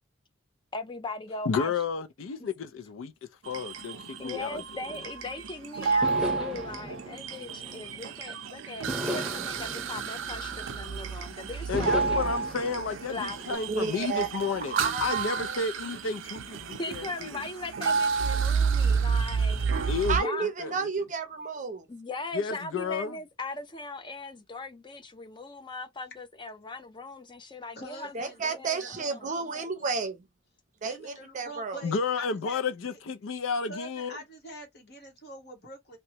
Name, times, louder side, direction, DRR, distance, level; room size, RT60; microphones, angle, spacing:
voice 1, 0.7-1.7 4.2-12.3 13.1-13.4 16.8-20.5 21.9-29.4, left 2 dB, 25° left, 0.5 m, -39 dB
voice 2, 1.5-3.1 3.4-4.6 11.7-14.7 15.0-17.4 19.9-20.9 22.3-23.2 31.8-34.2, left 5 dB, 90° left, 0.4 m, -31 dB
sound 1, 3.5-20.2, right 5 dB, 90° right, 0.5 m, -31 dB
sound 2, 6.0-8.3 8.9-11.1 11.7-13.5, equal, 5° right, 0.8 m, -37 dB
voice 3, 13.7-15.6 20.1-21.9 28.1-30.2 30.8-31.8, right 5 dB, 40° right, 0.5 m, -32 dB
voice 4, 27.8-29.9 30.8-32.6 32.9-33.0 33.6-36.0, right 1 dB, 60° left, 1.2 m, -45 dB
2.9 x 2.1 x 2.7 m
head